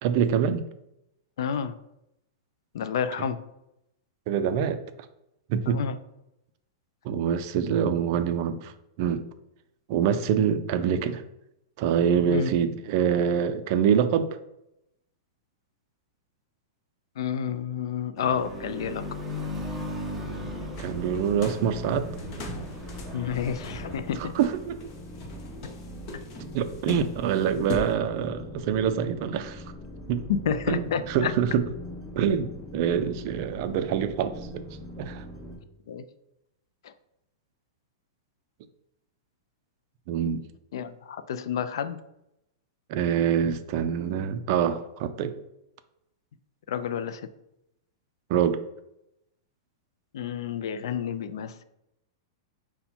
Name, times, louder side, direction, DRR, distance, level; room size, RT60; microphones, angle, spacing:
voice 1, 0.0-0.6 4.3-4.8 5.5-5.9 7.0-8.7 9.0-9.2 9.9-11.2 11.8-14.3 20.8-22.1 24.2-24.8 26.5-29.6 30.1-30.2 30.7-31.7 32.2-34.6 35.0-35.2 40.1-40.5 42.9-45.4 48.3-48.6, right 8 dB, 45° right, 10 dB, 0.4 m, -25 dB
voice 2, 1.4-1.7 2.7-3.4 5.7-6.0 12.3-12.5 17.2-19.0 23.1-24.3 30.3-31.3 35.9-36.0 36.8-36.9 40.2-40.3 40.7-42.0 46.7-47.2 50.1-51.6, left 7 dB, 70° left, 12 dB, 0.4 m, -30 dB
sound 1, 18.2-24.0, left 1 dB, 10° right, 0.6 m, -37 dB
sound 2, 20.2-35.6, equal, 15° left, 1.6 m, -42 dB
sound 3, 20.7-27.9, left 2 dB, 35° left, 0.7 m, -41 dB
5.4 x 2.2 x 4.3 m, 0.85 s
supercardioid pair, 155°, 3 cm